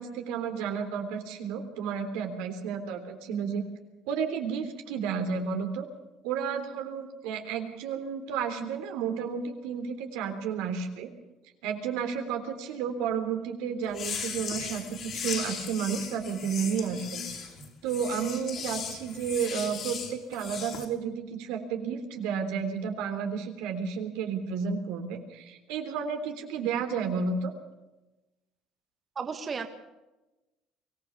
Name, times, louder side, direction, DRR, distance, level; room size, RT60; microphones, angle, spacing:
voice 1, 0.0-3.6 4.1-5.9 6.2-11.1 11.6-17.5 17.8-27.5, right 6 dB, 85° right, 5 dB, 3.4 m, -32 dB
sound 1, 13.9-20.9, left 6 dB, 55° left, 4.9 m, -37 dB
voice 2, 29.2-29.7, right 5 dB, 35° right, 6 dB, 1.9 m, -33 dB
24.0 x 16.0 x 7.1 m, 1.0 s
supercardioid pair, 100°, 0 cm